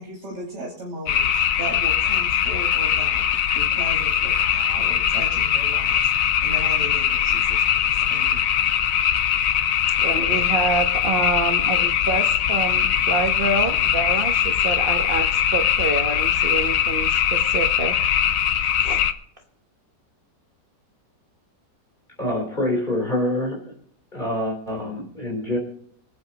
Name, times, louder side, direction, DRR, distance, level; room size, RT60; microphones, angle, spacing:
voice 1, 0.0-3.2 3.5-8.5, equal, 70° right, -4 dB, 3.6 m, -36 dB
sound 1, 1.1-19.1, left 9 dB, 60° left, 1.0 m, -21 dB
voice 2, 10.0-17.9 18.8-19.0, right 3 dB, 35° right, 2 dB, 1.1 m, -27 dB
voice 3, 22.2-23.7 24.1-25.6, left 1 dB, 25° left, -2 dB, 3.9 m, -26 dB
25.0 x 8.7 x 2.9 m, 0.63 s
omnidirectional pair, 1.9 m